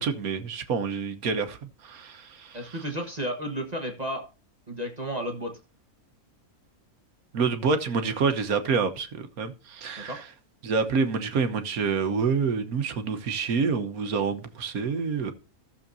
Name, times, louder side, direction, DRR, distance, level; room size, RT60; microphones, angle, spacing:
voice 1, 0.0-2.8 7.3-10.3 10.6-15.3, right 5 dB, 75° right, 1.5 m, -27 dB
voice 2, 2.5-4.2 4.7-5.5 10.0-10.2, equal, 30° right, 1.5 m, -32 dB
14.5 x 7.1 x 2.7 m
omnidirectional pair, 1.6 m